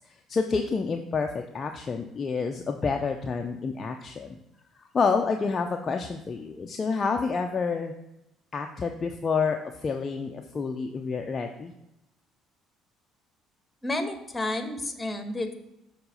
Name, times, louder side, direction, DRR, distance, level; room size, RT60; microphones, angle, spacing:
voice 1, 0.3-4.3 4.9-7.9 8.5-11.7, left 5 dB, 35° left, 4 dB, 0.5 m, -28 dB
voice 2, 13.8-15.5, left 2 dB, 15° left, 7 dB, 1.2 m, -31 dB
6.7 x 3.7 x 5.5 m, 0.89 s
figure-of-eight pair, 50°, 0 cm